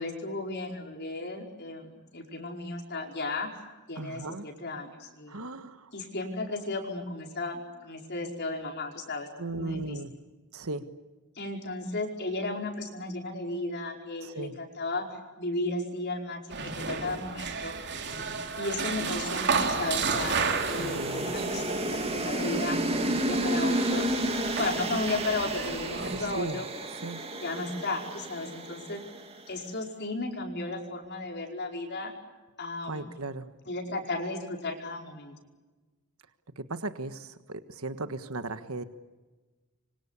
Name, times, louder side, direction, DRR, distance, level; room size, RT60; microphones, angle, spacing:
voice 1, 0.0-3.5 3.9-5.5 5.9-10.0 11.4-15.1 15.4-17.7 18.6-24.1 24.6-26.7 27.3-29.0 29.5-32.1 32.6-33.1 33.7-35.4, left 2 dB, 50° left, 2 dB, 5.2 m, -34 dB
voice 2, 3.9-4.5 5.3-5.9 9.4-10.1 10.5-10.9 14.2-14.6 20.8-21.3 26.0-26.6 27.0-27.2 32.9-33.5 36.6-38.8, right 2 dB, 70° right, 10 dB, 1.5 m, -36 dB
sound 1, 16.5-26.4, right 5 dB, 50° right, 3.2 m, -33 dB
sound 2, 19.1-29.4, right 1 dB, 25° right, 2.8 m, -32 dB
27.0 x 25.0 x 8.5 m, 1.2 s
head